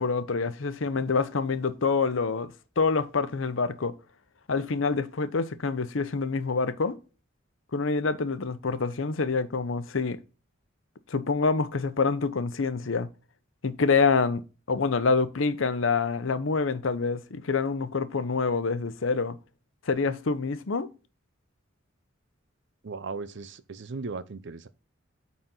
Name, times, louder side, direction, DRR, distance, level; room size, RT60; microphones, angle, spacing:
voice 1, 0.0-3.9 4.5-7.0 7.7-10.2 11.1-13.1 13.6-14.4 14.7-19.4 19.9-20.9, left 4 dB, 75° left, 0.7 m, -26 dB
voice 2, 22.8-24.7, right 4 dB, 60° right, 0.6 m, -37 dB
8.9 x 4.2 x 3.7 m
head